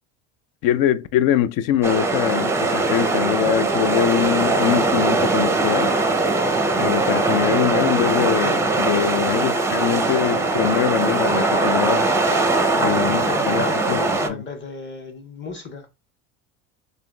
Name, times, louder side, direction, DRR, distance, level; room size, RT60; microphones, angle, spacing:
voice 1, 0.6-6.0 6.8-12.1 12.8-14.0 14.3-14.4, left 10 dB, 60° left, 0.5 m, -23 dB
sound 1, 1.8-14.3, right 3 dB, 5° right, 0.5 m, -21 dB
voice 2, 9.0-9.4 12.7-15.9, left 4 dB, 30° left, 1.0 m, -34 dB
3.5 x 2.6 x 2.2 m
hypercardioid pair, 75°, 38 cm